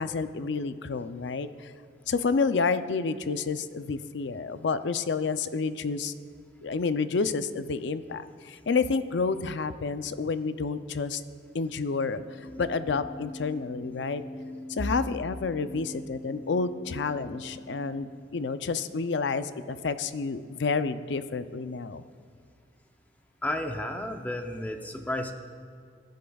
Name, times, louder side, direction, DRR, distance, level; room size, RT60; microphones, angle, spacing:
voice 1, 0.0-1.7 2.1-6.1 6.6-11.2 11.5-12.2 12.6-14.2 14.7-22.0, left 4 dB, 70° left, 11 dB, 0.5 m, -29 dB
sound 1, 12.1-18.2, left 2 dB, 55° left, 2.2 m, -43 dB
voice 2, 23.4-25.3, left 1 dB, 10° left, 4 dB, 0.6 m, -32 dB
20.5 x 10.5 x 2.3 m, 2.2 s
head